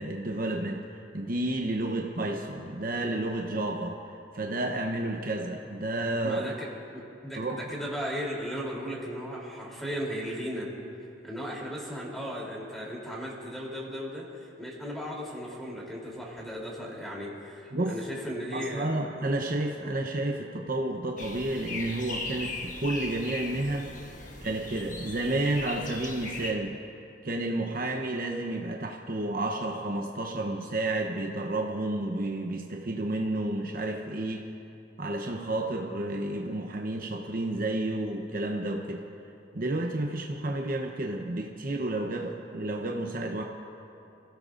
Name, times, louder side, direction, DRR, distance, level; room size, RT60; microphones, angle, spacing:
voice 1, 0.0-6.4 7.4-7.6 17.7-18.0 18.5-23.9 24.4-26.8 27.2-34.5 35.0-39.0 39.5-43.4, right 2 dB, 50° right, 1 dB, 0.9 m, -31 dB
voice 2, 6.2-6.7 6.9-10.7 11.2-18.9, equal, ahead, -4 dB, 3.2 m, -36 dB
sound 1, 21.2-26.5, left 3 dB, 45° left, 1.5 m, -38 dB
28.0 x 16.0 x 2.6 m, 2.7 s
head